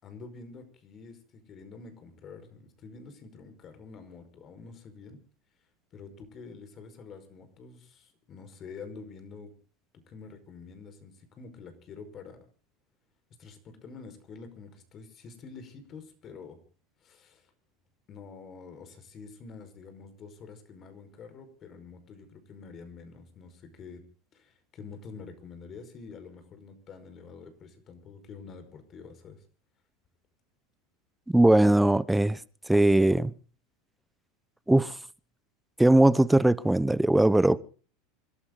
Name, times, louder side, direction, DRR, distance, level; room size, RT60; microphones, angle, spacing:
voice 1, 0.0-5.2 5.9-9.5 9.9-12.4 13.4-16.6 17.0-17.5 18.1-24.0 24.3-29.4, left 5 dB, 40° left, 5.1 m, -47 dB
voice 2, 31.3-32.4 32.7-33.3 34.7-34.9 35.8-37.6, right 1 dB, 5° right, 0.9 m, -20 dB
28.0 x 12.5 x 4.0 m
hypercardioid pair, 105°, 0 cm